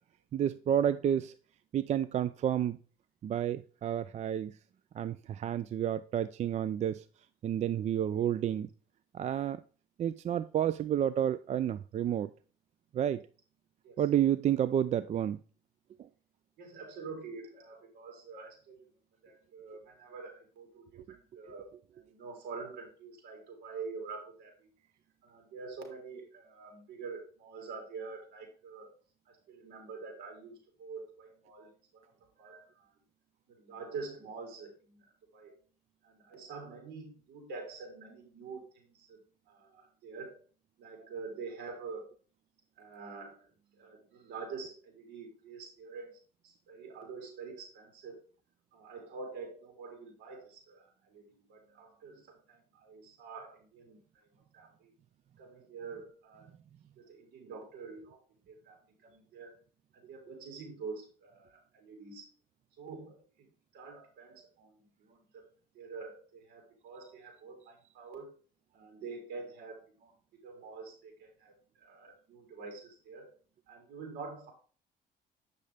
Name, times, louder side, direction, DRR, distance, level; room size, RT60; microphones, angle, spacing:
voice 1, 0.3-1.3 1.7-2.8 3.2-4.5 4.9-7.0 7.4-8.7 9.1-9.6 10.0-12.3 12.9-13.2 14.0-15.4 21.0-21.1, right 10 dB, 40° right, 14 dB, 0.4 m, -30 dB
voice 2, 16.6-18.8 19.2-24.7 25.2-28.9 29.3-32.9 33.5-35.1 35.3-35.5 36.0-39.2 39.5-40.4 40.8-42.0 42.8-43.4 43.8-46.1 46.4-48.2 48.7-54.3 54.5-54.9 55.4-56.5 57.0-58.2 58.5-59.6 59.9-62.2 62.8-63.5 63.7-65.5 65.7-68.3 68.7-70.1 70.4-73.3 73.7-74.5, right 4 dB, 75° right, 2 dB, 3.8 m, -46 dB
8.6 x 6.5 x 3.4 m, 0.39 s
cardioid pair, 110°, 17 cm